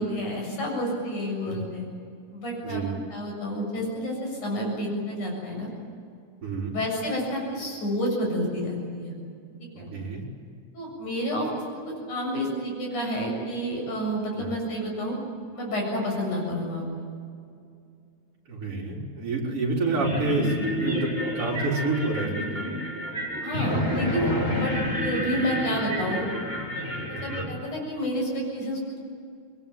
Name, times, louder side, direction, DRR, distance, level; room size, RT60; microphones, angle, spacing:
voice 1, 0.0-1.9 2.3-2.8 3.1-5.7 6.7-9.1 9.8-9.9 10.7-15.2 15.5-17.0 23.4-24.3 24.5-24.7 25.0-26.3 27.2-28.8, equal, 75° left, 0 dB, 8.7 m, -29 dB
voice 2, 2.6-3.0 6.4-6.7 9.9-10.2 14.4-14.5 18.5-21.1 21.4-22.7 27.2-27.5, right 3 dB, 45° right, -2 dB, 5.4 m, -28 dB
sound 1, 20.0-27.4, equal, 20° left, 3.6 m, -29 dB
25.5 x 22.0 x 9.1 m, 2.4 s
omnidirectional pair, 3.5 m